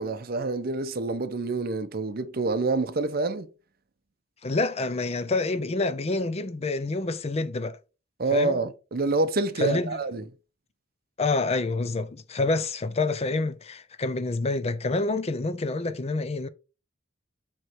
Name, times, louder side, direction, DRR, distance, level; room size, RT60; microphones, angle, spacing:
voice 1, 0.0-3.5 8.2-10.2, right 3 dB, 55° right, 0.7 m, -27 dB
voice 2, 4.4-7.8 8.3-8.6 9.6-10.0 11.2-16.5, left 3 dB, 35° left, 0.5 m, -27 dB
7.9 x 3.2 x 4.5 m
head